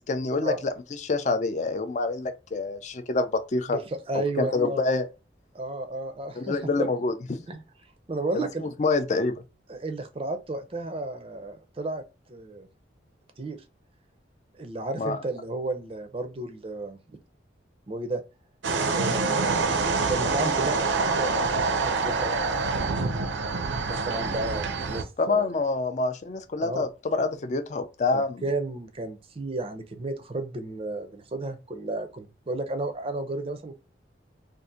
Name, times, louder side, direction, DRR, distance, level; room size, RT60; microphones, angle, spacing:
voice 1, 0.1-3.8 4.1-5.1 6.4-7.4 8.3-8.5 8.8-9.4 15.0-15.2 25.2-28.4, left 3 dB, 40° left, 0.4 m, -27 dB
voice 2, 3.7-4.9 5.5-6.9 7.5-7.6 8.1-8.6 9.7-12.0 12.3-12.7 13.4-13.6 14.6-17.2 17.9-18.2 18.9-23.5 23.9-25.5 26.6-26.9 28.1-33.7, right 2 dB, 30° right, 0.5 m, -33 dB
sound 1, 18.6-25.0, right 4 dB, 80° right, 0.5 m, -26 dB
2.6 x 2.4 x 3.6 m
head